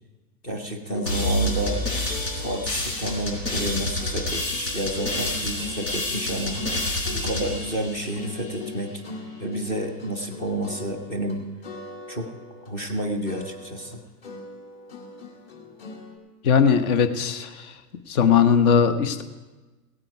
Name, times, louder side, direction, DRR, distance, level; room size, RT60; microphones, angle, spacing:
voice 1, 0.4-1.9 2.4-6.6 7.1-9.0 9.4-11.5 12.1-12.3 12.6-14.0, right 1 dB, 10° left, 3 dB, 0.3 m, -30 dB
sound 1, 0.8-11.4 11.6-13.0 13.2-16.2, left 3 dB, 40° left, 2.2 m, -41 dB
sound 2, 1.1-8.6, left 1 dB, 85° left, 4.8 m, -28 dB
voice 2, 16.4-17.7 18.1-19.2, left 7 dB, 60° left, 9 dB, 1.2 m, -19 dB
16.5 x 8.9 x 4.7 m, 1.2 s
hypercardioid pair, 125°, 49 cm